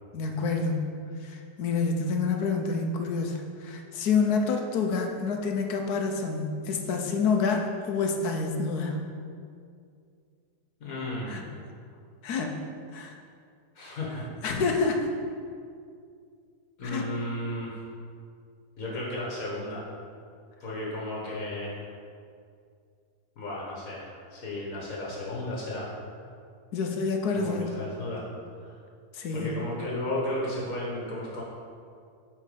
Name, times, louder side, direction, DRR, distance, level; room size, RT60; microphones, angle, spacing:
voice 1, 0.1-0.8 1.2-9.0 11.3-11.4 12.2-12.6 12.9-13.1 14.4-15.1 16.8-17.1 26.7-27.7 29.1-29.7, left 4 dB, 75° left, 3 dB, 1.3 m, -28 dB
voice 2, 10.8-11.4 13.8-14.3 16.8-17.8 18.8-19.8 20.6-21.9 23.4-25.9 27.3-28.3 28.5-28.8 29.3-31.4, left 1 dB, 55° left, -5 dB, 1.7 m, -34 dB
9.2 x 4.3 x 5.1 m, 2.3 s
omnidirectional pair, 1.7 m